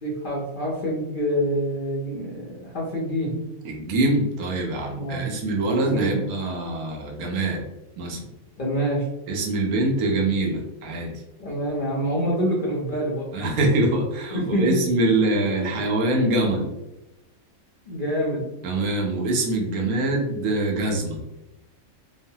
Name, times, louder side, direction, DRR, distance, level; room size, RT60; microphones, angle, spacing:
voice 1, 0.0-3.3 4.9-5.3 5.9-6.1 8.6-9.0 11.4-13.3 14.3-14.8 17.9-18.4, equal, 55° left, -5 dB, 0.5 m, -26 dB
voice 2, 3.6-7.6 8.0-8.3 9.3-11.2 13.3-16.7 18.6-21.2, right 2 dB, 85° right, 0 dB, 1.1 m, -24 dB
3.0 x 2.1 x 2.6 m, 0.96 s
omnidirectional pair, 1.5 m